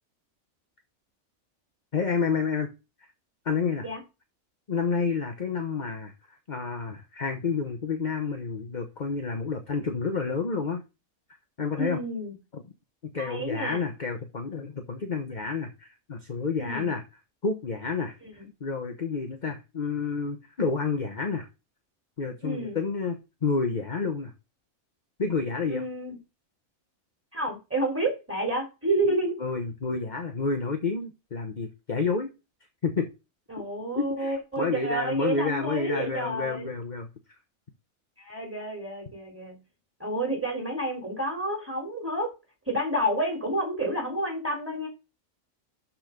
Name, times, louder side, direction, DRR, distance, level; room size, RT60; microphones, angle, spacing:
voice 1, 1.9-2.7 3.4-3.9 4.7-6.1 6.5-10.8 11.6-12.0 12.5-12.6 13.0-17.0 17.4-21.5 22.2-24.3 25.2-25.9 29.0-32.3 32.8-33.1 33.9-37.1, left 4 dB, 35° left, 5 dB, 1.1 m, -29 dB
voice 2, 11.8-12.3 13.2-13.8 16.6-16.9 18.2-18.5 22.4-22.8 25.7-26.2 27.3-29.3 33.5-36.7 38.2-39.6 40.0-42.3 42.7-44.9, right 1 dB, 10° right, 2 dB, 3.5 m, -29 dB
12.0 x 4.5 x 5.2 m, 0.28 s
omnidirectional pair, 1.5 m